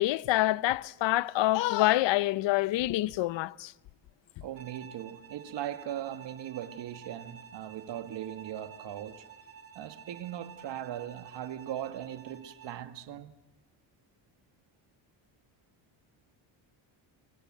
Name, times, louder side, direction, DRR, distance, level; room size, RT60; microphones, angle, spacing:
voice 1, 0.0-3.7, left 16 dB, 65° left, 0.8 m, -26 dB
voice 2, 4.4-9.2 9.8-13.3, right 11 dB, 60° right, 2.1 m, -39 dB
Bowed string instrument, 4.6-12.9, right 8 dB, 30° right, 2.9 m, -51 dB
25.0 x 24.0 x 7.8 m
cardioid pair, 110°, 48 cm